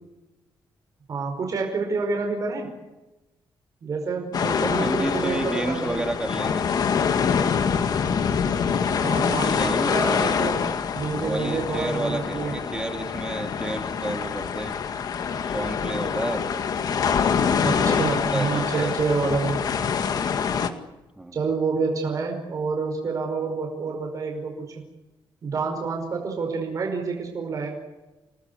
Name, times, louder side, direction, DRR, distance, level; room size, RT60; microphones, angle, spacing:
voice 1, 1.1-2.7 3.8-6.0 8.8-10.7 10.9-12.6 17.6-19.6 21.3-24.8 25.4-27.7, right 4 dB, 45° right, 2 dB, 5.2 m, -28 dB
sound 1, 4.3-20.7, left 6 dB, 55° left, 2.1 m, -25 dB
voice 2, 4.6-6.7 9.2-10.5 11.2-14.8 15.4-16.5 17.5-18.9 19.2-19.3 21.2-21.4, right 1 dB, 10° right, 4 dB, 3.3 m, -31 dB
30.0 x 19.5 x 8.5 m, 1.1 s
wide cardioid pair, 155°, 8 cm